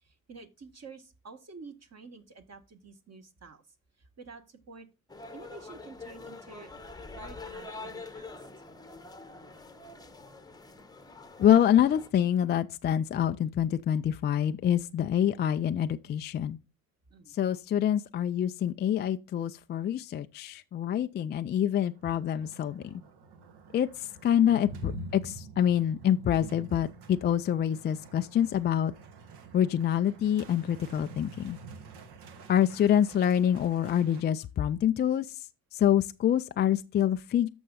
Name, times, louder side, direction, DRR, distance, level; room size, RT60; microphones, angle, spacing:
voice 1, 0.0-3.6 4.0-4.9 5.3-6.7 7.0-8.4 17.1-17.4, right 4 dB, 35° right, 1.6 m, -49 dB
sound 1, 5.1-12.1, left 3 dB, 10° left, 1.0 m, -45 dB
voice 2, 11.4-16.6 17.3-23.0 23.7-28.9 29.5-31.6 32.5-35.3 35.7-37.5, left 10 dB, 25° left, 0.3 m, -26 dB
sound 2, 21.9-34.2, right 3 dB, 60° right, 1.3 m, -47 dB
14.0 x 5.4 x 2.4 m
hypercardioid pair, 55°, 46 cm